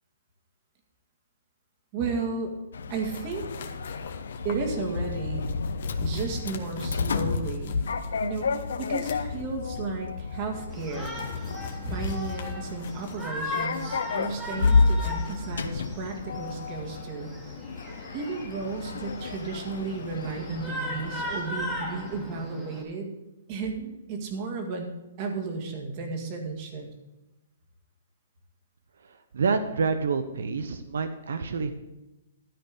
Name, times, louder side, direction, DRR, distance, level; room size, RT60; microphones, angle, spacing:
voice 1, 1.9-2.5 2.9-3.5 4.4-5.5 6.0-7.8 8.2-11.2 11.8-17.3 18.1-23.1 23.5-24.9 25.2-26.9, right 4 dB, 35° right, 3 dB, 1.9 m, -33 dB
Sliding door, 2.7-22.3, left 4 dB, 90° left, 0.7 m, -31 dB
sound 1, 3.1-15.4, left 5 dB, 55° left, 1.3 m, -43 dB
Shout, 10.7-22.8, left 1 dB, 5° right, 1.7 m, -38 dB
voice 2, 29.0-31.7, right 5 dB, 85° right, 9 dB, 0.8 m, -28 dB
13.0 x 4.4 x 8.3 m, 1.0 s
hypercardioid pair, 160°, 0 cm